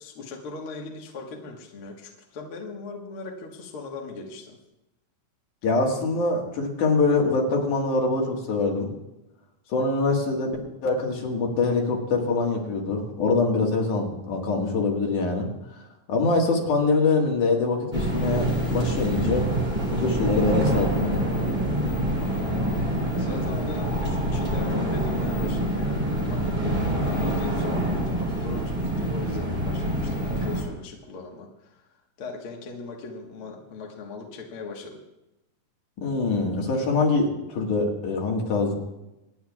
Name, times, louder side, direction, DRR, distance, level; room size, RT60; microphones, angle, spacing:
voice 1, 0.0-4.6 22.2-22.9 23.2-31.8 32.2-35.0, left 3 dB, 50° left, 0 dB, 1.9 m, -38 dB
voice 2, 5.6-8.9 9.7-10.6 10.8-15.5 16.1-19.5 20.0-21.2 36.0-38.7, left 3 dB, 70° left, -1 dB, 3.3 m, -24 dB
sound 1, 17.9-30.6, right 1 dB, 15° right, 2.8 m, -26 dB
26.5 x 9.9 x 2.4 m, 0.94 s
omnidirectional pair, 3.8 m